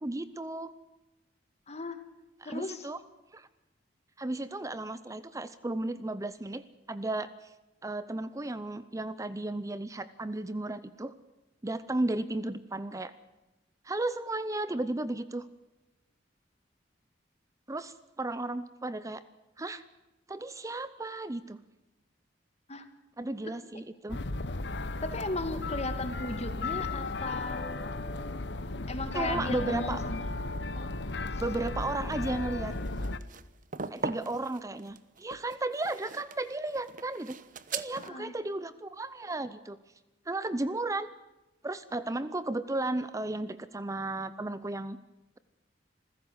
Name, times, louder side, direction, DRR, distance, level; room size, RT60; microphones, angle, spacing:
voice 1, 0.0-0.7 2.4-3.0 3.3-3.5 4.2-7.5 7.8-11.1 11.6-13.1 13.8-15.5 17.7-19.2 19.6-19.8 20.3-21.6 23.2-24.2 29.1-30.0 31.4-32.7 33.9-37.4 37.7-39.8 40.3-41.1 41.6-45.0, right 2 dB, 20° right, 14 dB, 0.7 m, -34 dB
voice 2, 1.7-2.0 2.4-2.9 22.7-22.9 25.0-27.9 28.9-30.2 30.7-30.9 31.3-31.4 38.0-38.3, left 2 dB, 40° left, 9 dB, 2.3 m, -36 dB
sound 1, 24.1-33.2, left 2 dB, 70° left, 1.1 m, -35 dB
sound 2, 32.7-38.1, right 5 dB, 50° right, 1.0 m, -40 dB
27.0 x 15.5 x 8.0 m, 1.0 s
head